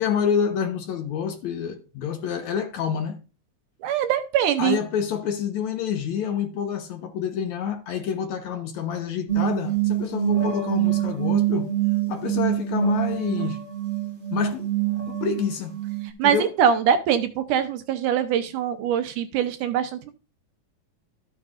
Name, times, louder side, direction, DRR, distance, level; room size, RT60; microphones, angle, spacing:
voice 1, 0.0-3.2 4.6-11.7 12.1-13.6 14.3-14.7 15.1-15.8 16.2-16.5, left 8 dB, 65° left, 2.1 m, -27 dB
voice 2, 3.8-4.8 16.2-20.1, right 9 dB, 75° right, 2.1 m, -23 dB
sound 1, 9.3-16.1, right 15 dB, 30° right, 1.4 m, -25 dB
13.5 x 8.2 x 2.5 m
omnidirectional pair, 3.9 m